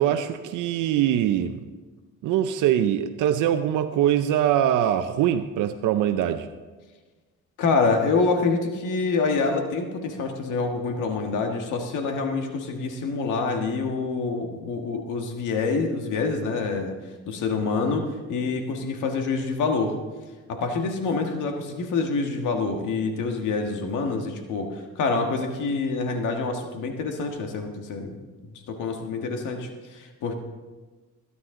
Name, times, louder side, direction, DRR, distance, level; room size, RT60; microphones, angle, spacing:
voice 1, 0.0-1.6 2.2-6.5, right 10 dB, 85° right, 8 dB, 0.6 m, -23 dB
voice 2, 7.6-17.0 17.3-20.0 20.5-28.2 28.7-30.3, left 4 dB, 85° left, 4 dB, 1.6 m, -26 dB
19.0 x 9.6 x 3.8 m, 1.3 s
cardioid pair, 90°, 30 cm